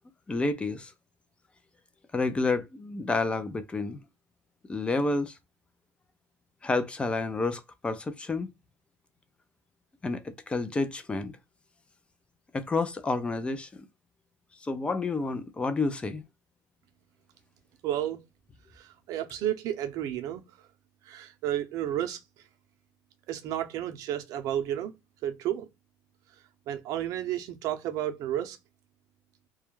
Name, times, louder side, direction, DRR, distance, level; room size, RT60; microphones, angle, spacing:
voice 1, 0.3-0.9 2.1-4.0 4.7-5.4 6.6-8.5 10.0-11.4 12.5-13.9 14.6-16.2, left 3 dB, 15° left, 0.4 m, -29 dB
voice 2, 17.8-18.2 19.1-20.4 21.1-22.2 23.3-24.9 25.2-25.7 26.7-28.6, right 11 dB, 65° right, 0.6 m, -31 dB
2.3 x 2.1 x 3.0 m
cardioid pair, 125°, 6 cm